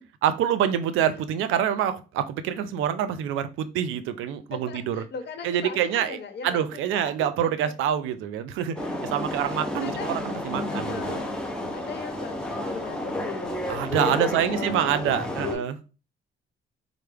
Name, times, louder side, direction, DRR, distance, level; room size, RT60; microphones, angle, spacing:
voice 1, 0.2-5.0 5.4-6.2 6.4-8.8 9.0-11.2 13.7-15.8, right 9 dB, 90° right, 12 dB, 0.4 m, -26 dB
voice 2, 4.7-7.1 7.4-7.5 9.8-10.4 10.7-11.3 11.7-13.7 14.1-15.7, left 6 dB, 60° left, 7 dB, 0.9 m, -38 dB
sound 1, 8.8-15.5, left 1 dB, 5° left, 0.8 m, -31 dB
4.4 x 2.0 x 3.4 m, 0.33 s
cardioid pair, 90°, 20 cm